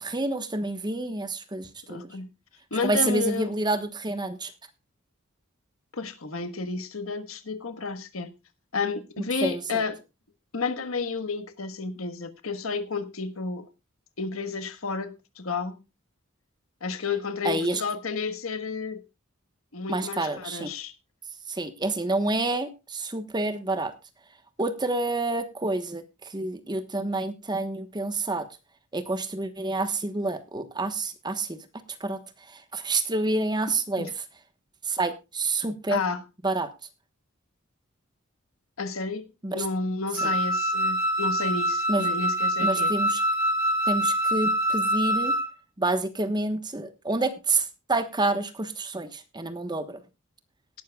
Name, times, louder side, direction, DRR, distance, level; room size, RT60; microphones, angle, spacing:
voice 1, 0.0-2.1 2.8-4.5 9.4-9.8 17.4-17.8 19.9-20.7 21.5-23.9 24.6-28.5 28.9-31.6 32.0-32.2 32.5-34.2 34.8-36.0 36.4-36.7 39.4-39.6 40.2-40.3 41.9-42.1 42.6-43.2 43.9-45.4 45.8-50.0, right 2 dB, 20° right, 1.2 m, -28 dB
voice 2, 1.9-2.3 2.7-3.5 5.9-8.3 8.7-10.0 10.5-13.6 14.2-15.8 16.8-19.0 19.7-20.9 34.0-34.1 35.9-36.2 38.8-42.9, left 4 dB, 85° left, 1.4 m, -31 dB
Wind instrument woodwind instrument, 40.2-45.5, right 1 dB, 65° left, 2.3 m, -25 dB
18.0 x 12.0 x 2.3 m
head